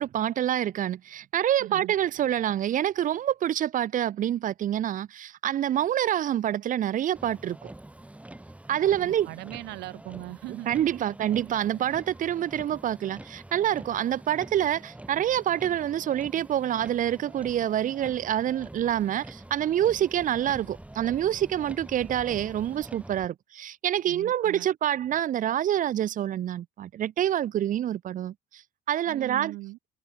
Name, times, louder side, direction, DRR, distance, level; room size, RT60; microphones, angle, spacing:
voice 1, 0.0-7.7 8.7-9.3 10.7-28.6 28.9-29.5, right 11 dB, 50° right, 0.8 m, -27 dB
voice 2, 1.6-1.9 9.0-10.7 11.0-11.1 24.0-24.7 29.0-29.8, right 20 dB, 90° right, 3.4 m, -40 dB
Motor vehicle (road), 7.1-23.3, right 1 dB, 10° right, 5.8 m, -45 dB
cardioid pair, 110°, 17 cm